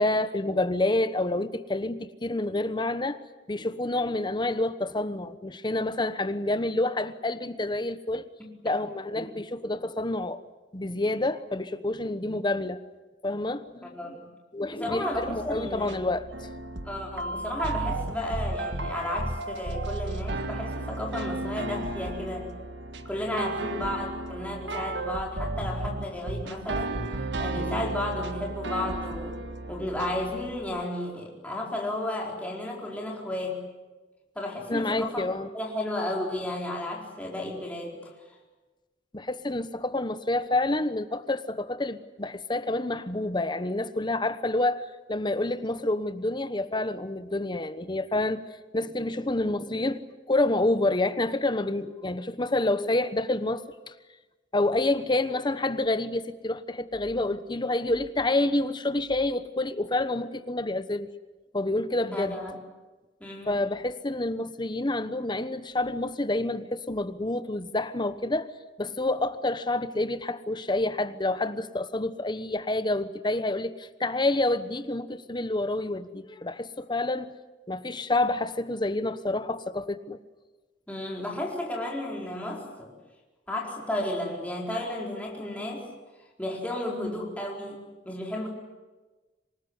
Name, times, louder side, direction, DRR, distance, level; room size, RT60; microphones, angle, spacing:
voice 1, 0.0-3.2 3.5-8.3 8.6-10.4 10.7-12.8 13.2-13.9 14.5-16.5 27.5-27.7 34.7-35.5 39.1-48.4 48.7-50.0 50.3-53.9 54.5-61.1 61.5-62.4 63.5-68.5 68.8-77.3 77.7-80.2, left 2 dB, 25° left, 1.1 m, -28 dB
voice 2, 13.8-14.2 14.7-16.0 16.8-22.5 23.0-29.4 29.7-33.6 34.3-35.3 35.5-38.1 62.1-62.6 63.2-63.6 80.9-82.9 83.5-85.9 86.4-88.5, left 1 dB, 10° left, 4.5 m, -33 dB
sound 1, 15.1-30.8, right 2 dB, 80° right, 1.6 m, -34 dB
26.5 x 20.0 x 9.6 m
head